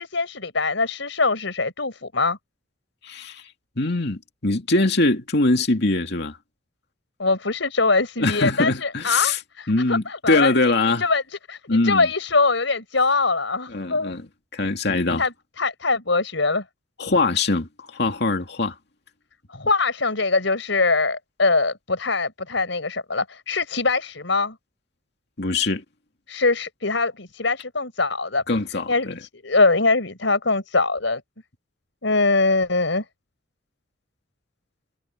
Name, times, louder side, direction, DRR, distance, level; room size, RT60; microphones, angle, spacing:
voice 1, 0.0-2.4 7.2-10.5 11.0-14.1 15.2-16.6 19.5-24.6 26.3-28.4 28.9-31.2 32.0-33.0, left 3 dB, 85° left, 4.6 m, -23 dB
voice 2, 3.0-3.4 3.8-6.4 8.2-9.4 9.7-11.0 11.7-12.1 13.7-14.3 14.5-15.2 17.0-18.7 25.4-25.8 28.5-29.1, left 2 dB, 65° left, 2.4 m, -22 dB
head